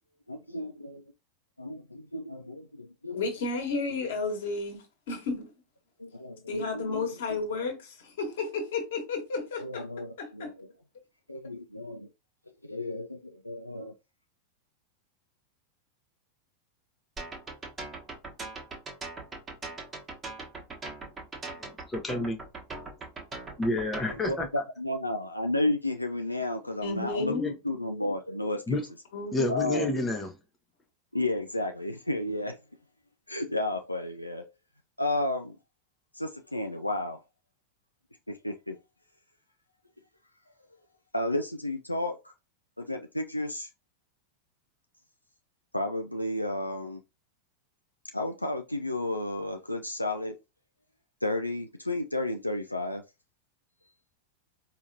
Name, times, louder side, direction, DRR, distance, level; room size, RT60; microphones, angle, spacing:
voice 1, 0.3-1.0 1.6-3.2 6.0-7.1 9.6-10.7 11.3-12.1 12.6-13.9 24.0-28.8 29.5-30.0 31.1-32.6 33.3-34.4 35.0-35.6 36.1-37.2 38.3-38.8 41.1-42.3 42.8-43.7 45.7-47.0 48.1-50.4 51.2-53.0, left 1 dB, 85° left, 0.3 m, -32 dB
voice 2, 3.1-5.5 6.5-9.9 10.2-10.5 26.7-27.5 28.4-28.6 29.1-29.7, left 3 dB, 55° left, 1.5 m, -32 dB
sound 1, 17.2-24.5, right 3 dB, 20° right, 1.1 m, -40 dB
voice 3, 21.6-22.4 23.6-24.5 27.2-27.5 28.7-28.9 29.3-30.3, left 2 dB, 15° left, 0.8 m, -30 dB
4.8 x 2.8 x 2.7 m
figure-of-eight pair, 90°, 0 cm